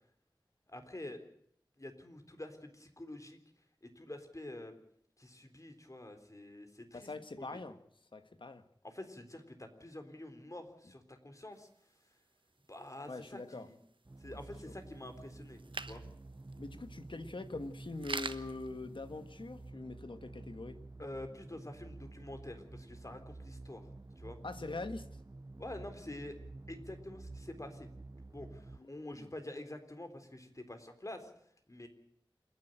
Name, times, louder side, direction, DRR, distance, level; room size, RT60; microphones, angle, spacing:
voice 1, 0.7-1.2 1.8-3.4 3.8-4.8 5.2-7.1 7.4-7.6 8.8-11.7 12.7-13.8 14.2-16.0 21.0-23.9 24.2-24.4 25.6-26.4 26.7-27.9 28.2-31.3 31.7-31.9, left 1 dB, 40° left, 7 dB, 3.8 m, -47 dB
voice 2, 6.9-7.8 8.1-8.6 13.1-13.7 14.3-14.4 14.7-14.8 16.6-20.8 24.4-25.1 28.8-29.3, left 3 dB, 80° left, 9 dB, 1.7 m, -43 dB
sound 1, 11.5-19.7, right 3 dB, 85° right, 1.1 m, -48 dB
sound 2, 14.1-28.8, right 2 dB, 35° right, 0.7 m, -50 dB
28.0 x 10.5 x 9.1 m, 0.68 s
wide cardioid pair, 45°, 8 cm